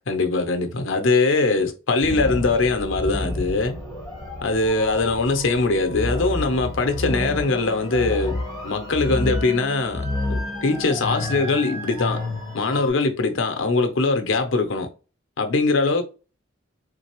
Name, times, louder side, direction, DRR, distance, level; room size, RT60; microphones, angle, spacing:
voice 1, 0.1-3.8 4.4-8.4 8.6-12.2 12.5-14.9 15.4-16.0, left 3 dB, 75° left, 0.7 m, -22 dB
sound 1, 2.0-12.9, left 2 dB, 15° right, 2.1 m, -30 dB
3.9 x 3.2 x 2.9 m
head